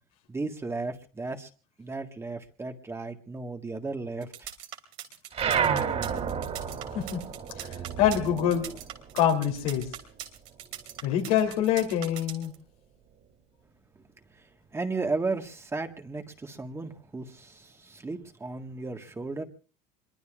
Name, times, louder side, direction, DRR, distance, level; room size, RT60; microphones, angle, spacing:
voice 1, 0.3-1.5 1.8-4.3 14.7-19.4, right 3 dB, 15° right, 5 dB, 1.6 m, -34 dB
sound 1, 4.2-12.5, right 12 dB, 80° right, 2.9 m, -41 dB
sound 2, 5.3-10.2 10.5-11.9, right 7 dB, 40° right, 3.0 m, -32 dB
voice 2, 6.9-7.3 7.6-8.7 9.1-9.9 11.0-12.5, left 9 dB, 85° left, 3 dB, 3.1 m, -25 dB
25.5 x 22.5 x 2.5 m, 0.36 s
supercardioid pair, 115°, 18 cm